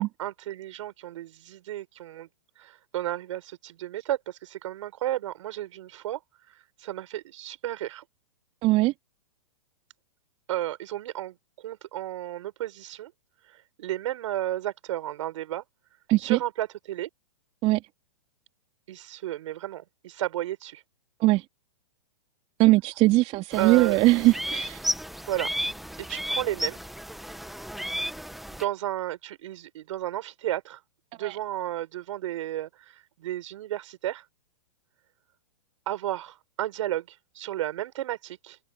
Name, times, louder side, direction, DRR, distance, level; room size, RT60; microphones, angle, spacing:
voice 1, 0.0-2.3 2.6-6.2 6.5-8.0 10.5-13.1 13.4-15.6 16.2-17.1 18.9-20.8 23.6-24.0 25.3-25.5 26.0-26.8 28.5-30.8 31.1-34.3 35.9-38.6, right 13 dB, 60° right, 6.1 m, -33 dB
voice 2, 8.6-8.9 16.1-16.4 17.6-17.8 21.2-21.4 22.6-24.8 31.2-31.4, right 19 dB, 35° right, 2.8 m, -21 dB
sound 1, 23.5-28.6, equal, ahead, 1.6 m, -33 dB
hypercardioid pair, 120°, 18 cm